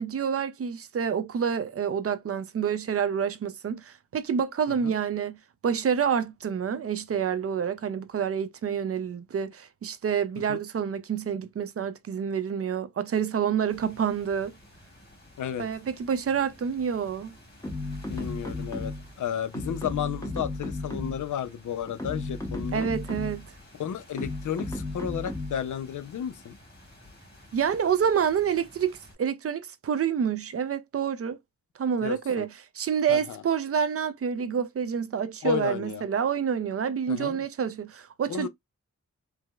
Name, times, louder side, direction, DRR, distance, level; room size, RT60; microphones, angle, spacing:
voice 1, 0.0-5.4 5.6-14.5 15.6-17.3 22.7-23.5 27.5-31.4 31.8-38.5, right 7 dB, 50° right, 0.4 m, -28 dB
sound 1, 13.7-29.1, left 1 dB, 35° left, 1.8 m, -53 dB
sound 2, 17.6-19.2 19.5-21.3 21.9-23.5 24.2-25.7, left 2 dB, 10° left, 0.7 m, -34 dB
voice 2, 18.1-22.9 23.8-26.6 32.0-32.4 33.1-33.4 35.4-36.0 37.1-37.4 38.3-38.5, left 9 dB, 80° left, 0.5 m, -33 dB
4.7 x 2.0 x 2.2 m
wide cardioid pair, 120°, 30 cm